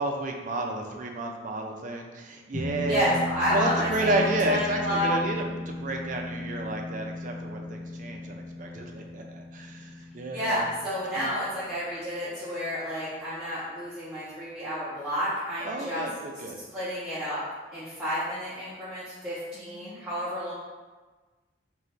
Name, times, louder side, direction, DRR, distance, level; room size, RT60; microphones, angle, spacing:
voice 1, 0.0-3.2 3.5-10.6 11.2-11.3 15.7-16.6 19.5-20.0, right 2 dB, 45° right, 2 dB, 0.4 m, -31 dB
sound 1, 2.5-13.2, left 2 dB, 20° left, 1.0 m, -37 dB
voice 2, 2.8-5.1 10.3-16.0 16.7-17.4 17.7-20.5, equal, 10° right, -15 dB, 0.9 m, -30 dB
3.0 x 2.5 x 4.4 m, 1.3 s
head